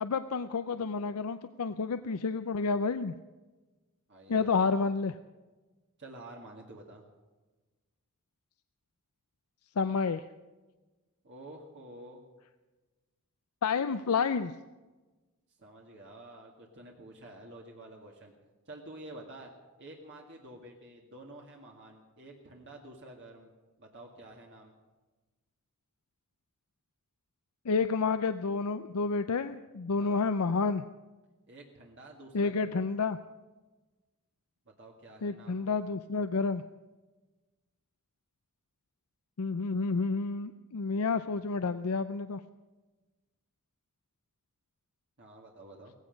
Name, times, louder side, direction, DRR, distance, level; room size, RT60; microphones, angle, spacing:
voice 1, 0.0-3.1 4.3-5.2 9.8-10.2 13.6-14.5 27.6-30.8 32.3-33.2 35.2-36.6 39.4-42.4, left 4 dB, 85° left, 10 dB, 0.6 m, -30 dB
voice 2, 4.1-4.7 6.0-7.0 11.2-12.2 15.6-18.3 18.7-19.5 19.8-23.5 23.8-24.7 30.0-30.2 31.5-32.8 34.8-35.7 45.2-45.9, right 1 dB, 55° right, 0 dB, 2.0 m, -49 dB
18.0 x 15.5 x 5.2 m, 1.2 s
head